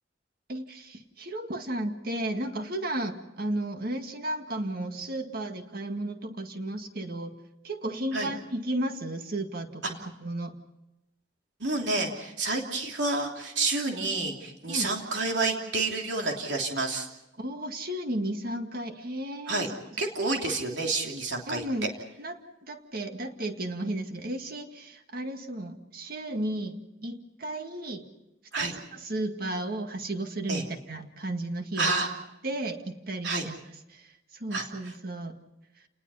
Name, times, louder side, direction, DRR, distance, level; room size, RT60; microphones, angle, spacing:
voice 1, 0.5-7.4 7.6-9.8 10.2-10.6 14.7-14.9 17.3-19.6 20.2-20.4 21.5-21.9 22.2-22.4 22.7-28.1 28.6-31.9 32.4-33.6 33.9-35.4, right 1 dB, 55° right, 6 dB, 1.9 m, -34 dB
voice 2, 11.6-17.1 19.5-19.7 20.0-21.6 28.5-28.7 30.5-30.6 31.8-32.1 33.2-33.4 34.5-34.6, right 3 dB, 80° right, 1 dB, 3.1 m, -29 dB
29.5 x 20.0 x 5.6 m, 0.93 s
head